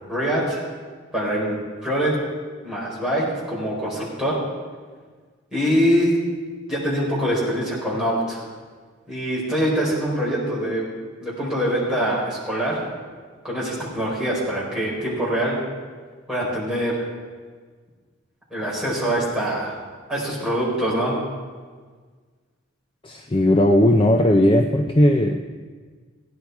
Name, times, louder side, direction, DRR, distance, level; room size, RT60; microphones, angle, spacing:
voice 1, 0.1-0.6 1.1-1.6 1.8-2.2 2.6-4.4 5.5-6.2 6.7-8.4 9.1-10.8 11.2-12.9 13.4-15.6 16.3-17.1 18.5-19.8 20.1-21.2, equal, 5° right, -8 dB, 4.7 m, -24 dB
voice 2, 23.0-25.4, left 1 dB, 25° left, 4 dB, 0.5 m, -17 dB
16.5 x 10.5 x 4.7 m, 1.5 s
head